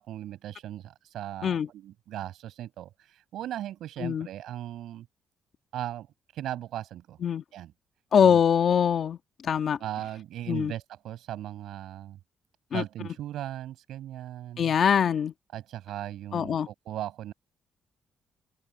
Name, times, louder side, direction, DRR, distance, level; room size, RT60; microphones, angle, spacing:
voice 1, 0.0-5.1 5.7-6.1 6.3-7.2 7.5-7.7 8.2-8.4 9.8-12.2 12.7-14.7 15.5-17.3, right 12 dB, 80° right, 7.7 m, -38 dB
voice 2, 8.1-9.2 9.4-9.8 10.5-10.7 12.7-12.8 14.6-15.3 16.3-16.7, left 8 dB, 55° left, 1.7 m, -23 dB
cardioid pair, 90°, 0 cm